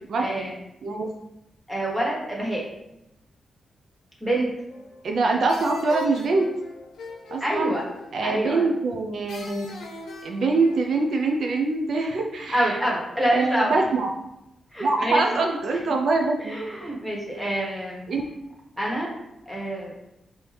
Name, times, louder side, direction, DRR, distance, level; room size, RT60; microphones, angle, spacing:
voice 1, 0.2-0.5 1.7-2.6 4.2-4.5 7.4-7.9 8.2-8.6 12.4-13.7 14.7-15.2 16.4-18.1 18.8-19.1 19.4-19.9, right 1 dB, 5° right, -4 dB, 1.3 m, -26 dB
sound 1, 4.7-5.2 5.5-8.6 9.3-11.1, left 3 dB, 85° left, 0.7 m, -40 dB
voice 2, 5.0-6.5 7.3-7.7 8.1-9.7 10.2-12.8 13.3-14.1 14.8-16.5 18.1-18.2, right 3 dB, 65° right, 2 dB, 0.4 m, -24 dB
4.6 x 2.7 x 3.3 m, 0.87 s
wide cardioid pair, 120°, 0 cm